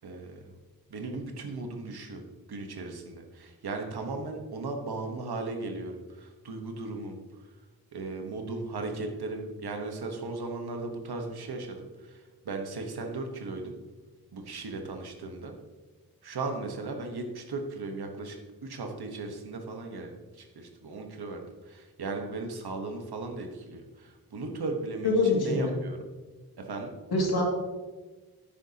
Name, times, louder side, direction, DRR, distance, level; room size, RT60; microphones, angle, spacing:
voice 1, 0.0-0.4 0.9-2.2 2.5-7.2 7.9-13.8 14.3-15.5 16.2-21.4 21.7-26.0 26.7-26.9, right 3 dB, 85° right, 3 dB, 1.2 m, -37 dB
voice 2, 25.0-25.8 27.1-27.5, left 2 dB, 90° left, -1 dB, 2.3 m, -24 dB
10.5 x 9.0 x 2.8 m, 1.3 s
wide cardioid pair, 140°, 38 cm